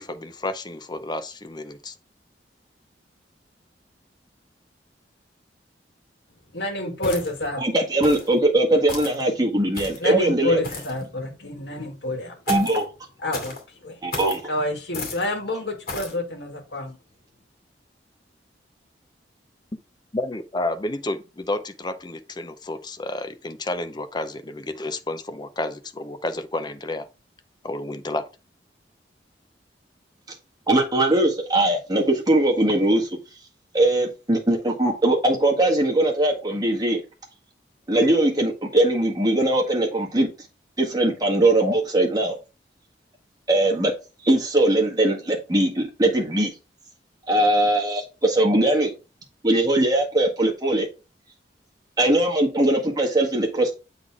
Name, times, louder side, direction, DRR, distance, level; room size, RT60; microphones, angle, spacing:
voice 1, 0.0-1.9 20.1-27.1 27.6-28.3, left 2 dB, 25° left, 0.6 m, -31 dB
voice 2, 6.5-7.6 10.0-12.3 13.2-13.5 13.8-13.9 14.5-17.0, left 1 dB, 80° left, 1.9 m, -28 dB
sound 1, 7.0-7.5 8.0-8.3 8.9-9.2 9.7-10.1 10.6-11.0 12.5-12.8 13.3-13.6 14.1-14.4 14.9-15.3 15.9-16.2, left 3 dB, 60° left, 2.5 m, -34 dB
voice 3, 7.6-10.6 12.5-12.8 14.0-14.4 30.7-33.1 33.7-37.0 37.9-40.3 40.8-42.3 43.5-43.9 44.2-46.5 47.3-48.9 49.4-50.9 52.0-53.7, right 1 dB, 25° right, 1.6 m, -20 dB
7.9 x 4.0 x 3.5 m
head